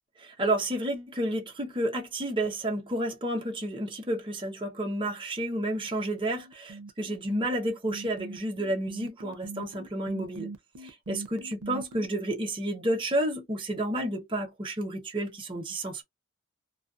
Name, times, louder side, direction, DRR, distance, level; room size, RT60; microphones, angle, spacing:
voice 1, 0.2-10.5 10.8-16.0, right 1 dB, 25° right, 0.7 m, -31 dB
sound 1, 5.7-12.1, right 3 dB, 85° right, 0.5 m, -42 dB
2.4 x 2.3 x 2.3 m
head